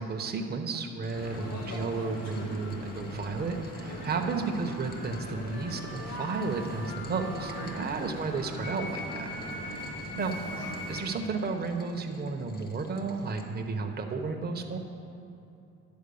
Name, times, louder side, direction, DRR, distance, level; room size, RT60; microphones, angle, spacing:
voice 1, 0.0-9.3 10.2-10.4 10.9-14.8, right 4 dB, 35° right, 3 dB, 0.8 m, -33 dB
Rain, 1.0-13.4, left 1 dB, 30° left, 1.2 m, -54 dB
sound 1, 1.1-11.0, left 1 dB, 60° left, 1.9 m, -39 dB
Harmonica, 4.5-11.1, right 2 dB, 80° left, 1.9 m, -46 dB
10.5 x 4.4 x 6.9 m, 2.7 s
cardioid pair, 90°, 30 cm